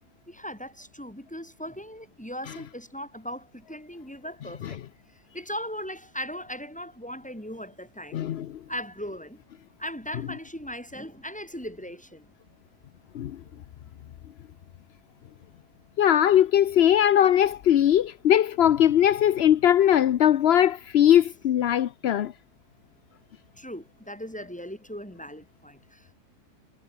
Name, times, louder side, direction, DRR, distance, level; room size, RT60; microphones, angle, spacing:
voice 1, 0.3-4.8 5.3-8.2 8.7-9.4 9.8-12.3 23.6-26.1, equal, 5° left, 5.7 m, -38 dB
voice 2, 8.1-8.6 13.1-13.4 16.0-22.3, left 10 dB, 70° left, 0.6 m, -20 dB
omnidirectional pair, 1.8 m